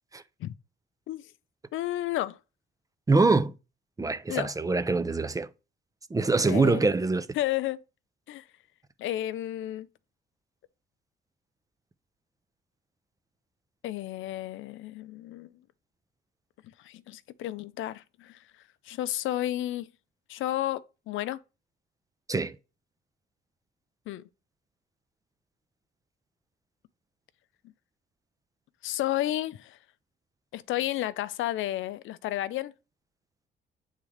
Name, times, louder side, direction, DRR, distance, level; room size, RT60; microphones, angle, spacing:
voice 1, 1.7-2.4 4.3-4.5 6.5-6.9 7.3-7.8 8.3-8.4 9.0-9.9 13.8-15.5 16.8-18.4 18.9-19.9 20.3-21.4 24.1-24.2 28.8-29.8 30.5-32.7, left 14 dB, 80° left, 0.5 m, -32 dB
voice 2, 3.1-3.5 4.0-5.5 6.1-7.3 22.3-22.5, right 3 dB, 15° right, 0.5 m, -24 dB
8.4 x 3.6 x 3.3 m
cardioid pair, 90°, 20 cm